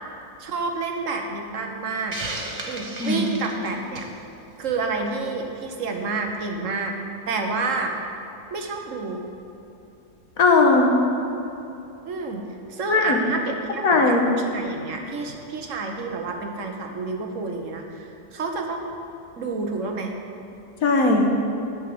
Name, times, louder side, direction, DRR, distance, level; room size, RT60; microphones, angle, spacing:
voice 1, 0.4-2.2 2.6-4.1 4.6-6.9 7.3-7.9 8.5-9.2 12.0-18.9 19.4-20.1, right 3 dB, 60° right, 3 dB, 1.3 m, -29 dB
Hiss, 2.1-4.2, right 2 dB, 30° right, 1.1 m, -33 dB
voice 2, 10.4-10.9 12.9-13.2 13.8-14.2 20.8-21.3, left 3 dB, 65° left, 1 dB, 1.6 m, -18 dB
9.9 x 6.3 x 7.7 m, 2.8 s
omnidirectional pair, 1.6 m